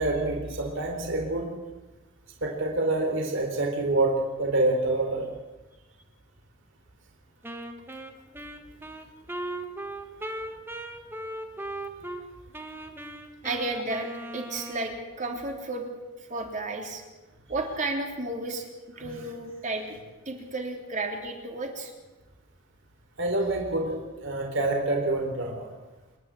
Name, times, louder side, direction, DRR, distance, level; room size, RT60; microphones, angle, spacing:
voice 1, 0.0-1.5 2.4-5.2 19.0-19.2 23.2-25.7, right 2 dB, 60° right, 2 dB, 3.8 m, -27 dB
Wind instrument woodwind instrument, 7.4-12.2 12.5-15.2, right 1 dB, 10° right, 1.4 m, -38 dB
voice 2, 13.4-14.1 14.3-15.9 16.3-17.0 17.5-18.7 19.0-20.0 20.2-21.9, right 2 dB, 35° right, 2 dB, 3.3 m, -32 dB
27.5 x 11.0 x 8.6 m, 1.2 s
head